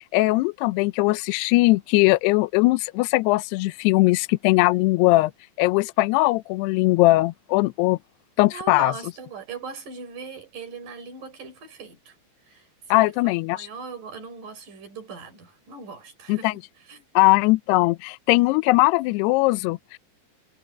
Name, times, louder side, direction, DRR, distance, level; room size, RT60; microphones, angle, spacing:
voice 1, 0.1-5.3 5.6-8.0 8.4-8.9 12.9-13.7 16.3-16.5 17.2-20.0, left 21 dB, 80° left, 2.5 m, -20 dB
voice 2, 8.5-12.2 12.4-17.0, right 5 dB, 50° right, 5.3 m, -40 dB
omnidirectional pair, 5.2 m